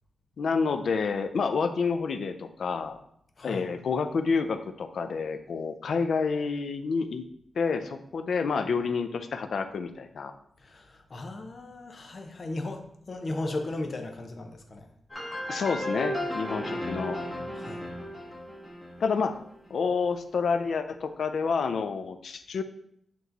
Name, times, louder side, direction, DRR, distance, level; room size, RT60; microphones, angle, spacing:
voice 1, 0.4-3.0 3.4-7.2 7.6-10.3 15.5-17.2 19.0-19.3 19.7-22.6, left 5 dB, 75° left, 9 dB, 0.5 m, -29 dB
voice 2, 10.6-14.9 16.5-17.8, left 2 dB, 45° left, 4 dB, 0.8 m, -37 dB
sound 1, 15.1-19.7, left 1 dB, 15° left, 1.3 m, -34 dB
8.0 x 3.1 x 4.0 m, 0.70 s
wide cardioid pair, 120°, 0 cm